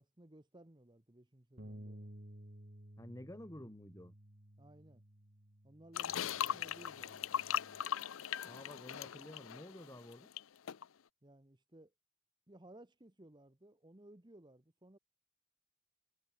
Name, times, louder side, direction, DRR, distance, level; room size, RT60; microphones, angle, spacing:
voice 1, 0.0-2.1 4.6-5.0 5.6-7.4 11.2-11.9 12.5-15.0, right 1 dB, 20° right, 1.1 m, -59 dB
Bass guitar, 1.6-7.8, right 1 dB, 45° right, 2.7 m, -55 dB
voice 2, 3.0-4.1 6.1-6.6 8.4-10.3, left 1 dB, 15° left, 1.6 m, -51 dB
sound 1, 5.9-10.4 10.7-10.8, left 9 dB, 70° left, 0.5 m, -39 dB
head